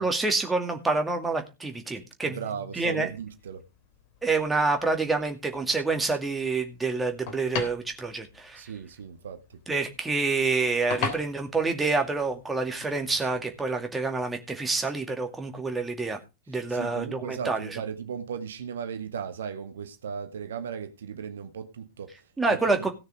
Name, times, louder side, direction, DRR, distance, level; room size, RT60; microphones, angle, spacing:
voice 1, 0.0-2.4 2.8-3.1 4.2-8.6 9.7-16.2 16.5-17.7 22.4-22.9, right 3 dB, 10° right, 2.3 m, -27 dB
voice 2, 2.2-3.6 8.5-9.6 16.5-22.9, right 7 dB, 65° right, 1.2 m, -37 dB
sound 1, 2.8-13.6, left 6 dB, 50° left, 3.3 m, -41 dB
17.0 x 6.6 x 4.8 m
figure-of-eight pair, 90°, 0 cm